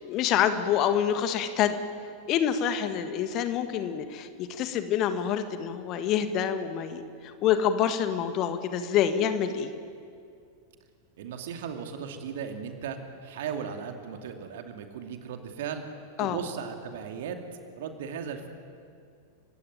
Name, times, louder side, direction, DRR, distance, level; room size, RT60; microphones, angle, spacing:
voice 1, 0.0-1.8 2.3-9.7 16.2-16.4, left 9 dB, 35° left, 9 dB, 1.8 m, -27 dB
voice 2, 11.2-15.8 16.2-17.4 17.8-18.5, right 7 dB, 55° right, 5 dB, 2.6 m, -36 dB
30.0 x 16.5 x 9.5 m, 2.3 s
figure-of-eight pair, 90°, 0 cm